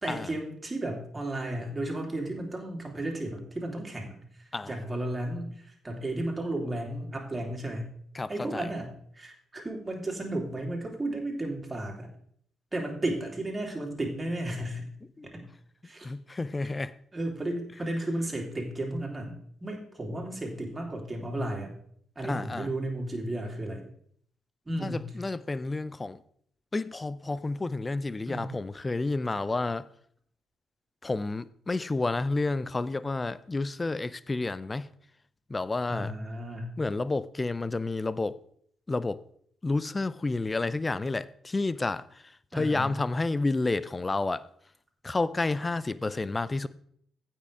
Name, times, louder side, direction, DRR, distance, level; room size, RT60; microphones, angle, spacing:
voice 1, 0.0-7.9 8.3-12.1 12.7-14.9 15.2-15.4 15.8-16.1 17.1-21.7 22.1-23.9 24.6-25.1 28.3-28.4 35.9-36.7 42.5-43.0, right 1 dB, 25° right, 3.2 m, -34 dB
voice 2, 8.1-8.7 15.2-15.3 16.0-16.9 22.2-22.7 24.8-26.2 26.7-29.9 31.0-34.9 35.5-36.1 36.8-38.4 38.9-39.2 39.6-44.5 45.0-46.7, left 3 dB, 25° left, 0.5 m, -30 dB
15.5 x 5.9 x 3.5 m
figure-of-eight pair, 45°, 0 cm